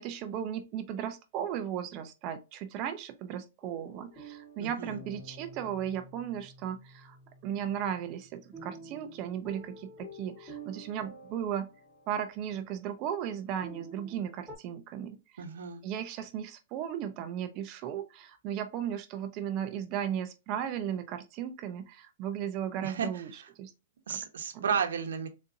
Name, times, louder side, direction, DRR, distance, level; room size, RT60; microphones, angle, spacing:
voice 1, 0.0-7.2 7.4-11.7 12.1-15.4 15.8-23.7 24.1-24.2 24.5-24.7, right 9 dB, 30° right, 0.4 m, -36 dB
sound 1, 3.6-14.6, right 2 dB, 5° left, 0.9 m, -50 dB
voice 2, 4.6-5.0 15.4-15.8 22.8-23.1 24.1-25.3, right 7 dB, 85° right, 0.8 m, -33 dB
3.9 x 2.5 x 2.5 m
hypercardioid pair, 170°, 0 cm